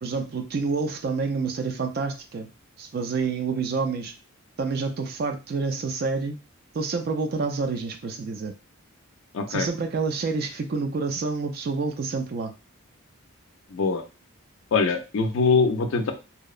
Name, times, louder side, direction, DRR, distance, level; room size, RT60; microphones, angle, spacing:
voice 1, 0.0-2.5 2.8-4.1 4.6-6.4 6.7-8.5 9.5-12.5, right 4 dB, 45° right, 6 dB, 0.3 m, -28 dB
voice 2, 9.3-9.7 13.7-14.0 14.7-16.1, left 4 dB, 60° left, 6 dB, 0.4 m, -23 dB
2.7 x 2.0 x 2.3 m, 0.30 s
head